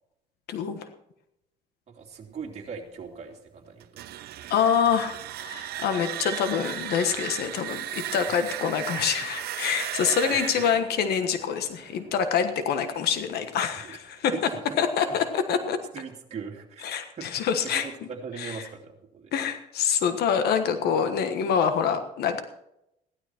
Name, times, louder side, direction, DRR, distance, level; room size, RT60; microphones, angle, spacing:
voice 1, 0.5-0.9 4.5-14.3 14.8-15.8 16.8-17.8 18.4-18.6 19.3-22.4, left 7 dB, 70° left, 8 dB, 1.4 m, -26 dB
voice 2, 1.9-4.0 8.3-8.5 10.2-10.8 13.8-14.0 14.3-14.8 15.9-17.3 17.6-19.3, right 6 dB, 40° right, -1 dB, 3.0 m, -40 dB
sound 1, 3.8-12.6, right 13 dB, 70° right, 0.8 m, -36 dB
16.0 x 11.5 x 4.5 m, 0.81 s
cardioid pair, 110°, 17 cm